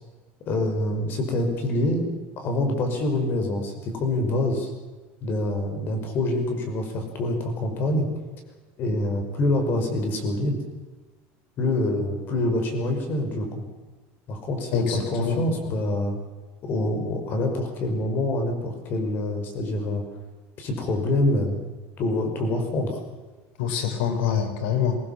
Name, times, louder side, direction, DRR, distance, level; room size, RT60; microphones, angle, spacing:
voice 1, 0.5-4.7 5.2-8.1 8.8-10.6 11.6-13.6 14.3-16.2 16.6-20.0 20.6-21.6 22.0-23.0, left 1 dB, 35° left, 5 dB, 5.4 m, -26 dB
voice 2, 14.7-15.5 23.6-25.0, left 8 dB, 85° left, 5 dB, 4.7 m, -25 dB
23.5 x 18.5 x 7.4 m, 1.3 s
cardioid pair, 160°, 6 cm